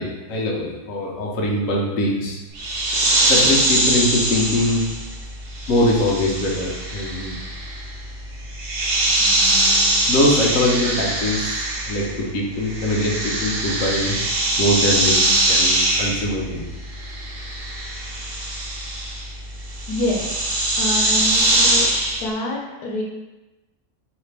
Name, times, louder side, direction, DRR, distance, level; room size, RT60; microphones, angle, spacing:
voice 1, 0.0-2.4 3.3-4.9 5.7-7.4 10.1-14.2 14.6-15.2 15.5-16.6, left 1 dB, 60° left, -2 dB, 1.1 m, -22 dB
sound 1, 2.6-12.3 12.5-22.3, right 1 dB, 50° right, 0.7 m, -22 dB
voice 2, 19.9-20.4 20.7-21.9 22.2-23.0, left 1 dB, 80° left, -1 dB, 1.3 m, -26 dB
4.0 x 3.2 x 3.3 m, 1.1 s
omnidirectional pair, 1.6 m